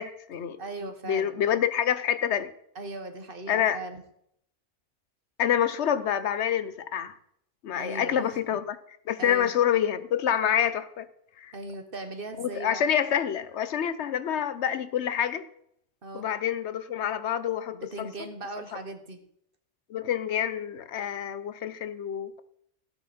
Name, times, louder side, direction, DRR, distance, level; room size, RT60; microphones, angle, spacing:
voice 1, 0.0-2.5 3.5-3.8 5.4-7.1 7.6-11.1 11.4-11.5 12.4-15.4 16.1-18.1 19.9-22.4, left 9 dB, 75° left, 14 dB, 1.0 m, -27 dB
voice 2, 0.6-1.4 2.7-4.0 7.7-8.4 9.2-9.5 11.5-12.9 16.0-16.3 17.7-19.2, right 2 dB, 50° right, 8 dB, 1.4 m, -38 dB
16.5 x 8.7 x 4.3 m, 0.72 s
omnidirectional pair, 1.2 m